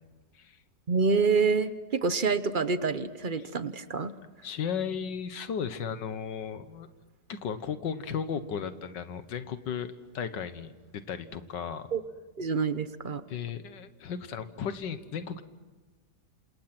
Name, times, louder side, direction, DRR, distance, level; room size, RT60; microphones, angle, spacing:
voice 1, 0.9-4.1 11.9-12.0 12.4-13.2, right 4 dB, 40° right, 12 dB, 0.8 m, -27 dB
voice 2, 4.4-6.9 7.3-11.9 13.3-15.4, left 7 dB, 80° left, 11 dB, 1.8 m, -35 dB
28.5 x 27.0 x 6.0 m, 1.3 s
omnidirectional pair, 1.9 m